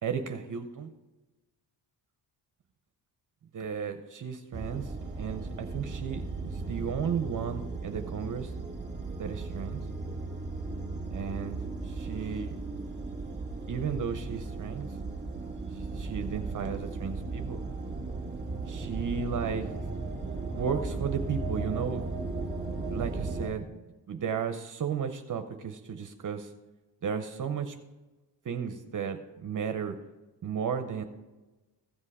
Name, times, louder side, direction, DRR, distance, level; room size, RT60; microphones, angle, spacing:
voice 1, 0.0-0.9 3.5-8.5 9.2-9.8 11.1-12.6 13.7-14.9 15.7-17.6 18.7-19.7 20.6-22.1 22.9-23.7 24.1-26.5 27.0-27.8 28.4-30.0 30.4-31.0, right 7 dB, 45° right, 7 dB, 0.7 m, -34 dB
sound 1, 4.5-23.5, right 3 dB, 25° right, 2.1 m, -36 dB
15.5 x 5.5 x 4.8 m, 1.1 s
cardioid pair, 125°, 43 cm